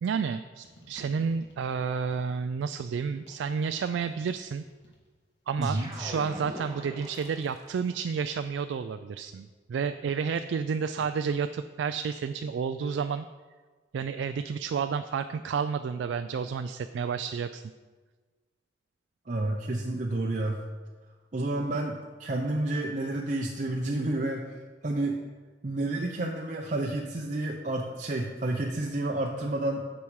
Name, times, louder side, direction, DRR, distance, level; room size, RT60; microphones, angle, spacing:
voice 1, 0.0-4.6 5.5-13.3 13.9-17.6, right 6 dB, 85° right, 9 dB, 0.3 m, -31 dB
sound 1, 0.6-2.5 3.3-5.1 5.7-7.4 7.7-8.3, equal, 70° left, 2.0 m, -55 dB
sound 2, 5.6-7.8, right 1 dB, 20° right, 1.5 m, -42 dB
voice 2, 5.6-5.9 19.3-20.6 21.3-25.2 25.6-29.9, right 2 dB, 40° right, 0 dB, 0.6 m, -30 dB
8.6 x 6.2 x 4.7 m, 1.4 s
head